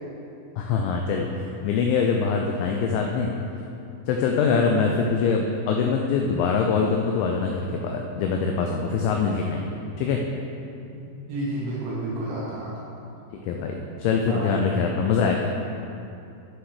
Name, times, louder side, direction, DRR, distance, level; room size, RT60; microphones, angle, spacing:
voice 1, 0.6-3.3 4.1-10.2 13.4-15.5, left 5 dB, 85° left, 2 dB, 2.6 m, -24 dB
voice 2, 10.9-12.9 14.2-14.6, right 1 dB, 75° right, -6 dB, 3.7 m, -31 dB
11.5 x 6.1 x 4.8 m, 2.7 s
omnidirectional pair, 5.9 m